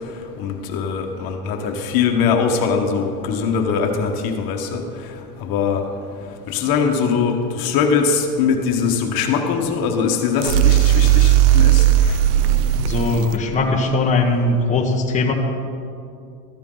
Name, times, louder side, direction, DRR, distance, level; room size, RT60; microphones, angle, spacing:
voice 1, 0.4-4.8 5.4-5.8 6.5-12.2, left 6 dB, 50° left, 4 dB, 1.4 m, -21 dB
sound 1, 10.4-13.4, right 12 dB, 80° right, 0.8 m, -15 dB
voice 2, 12.9-15.3, left 3 dB, 15° left, -1 dB, 1.2 m, -19 dB
15.0 x 14.0 x 3.9 m, 2.5 s
supercardioid pair, 135°, 47 cm